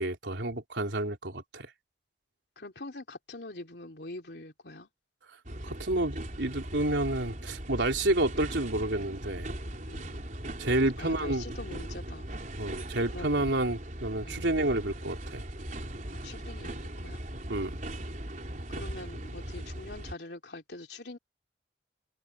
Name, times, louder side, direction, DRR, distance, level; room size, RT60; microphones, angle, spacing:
voice 1, 0.0-1.7 5.6-9.5 10.6-11.5 12.6-15.4 17.5-17.7, right 1 dB, 85° right, 3.7 m, -29 dB
voice 2, 2.6-4.9 9.9-10.2 11.0-12.3 13.1-13.6 14.2-14.4 16.2-17.2 18.7-21.2, left 2 dB, 65° left, 3.4 m, -44 dB
sound 1, 5.4-20.1, right 1 dB, 45° right, 4.5 m, -39 dB
open air
head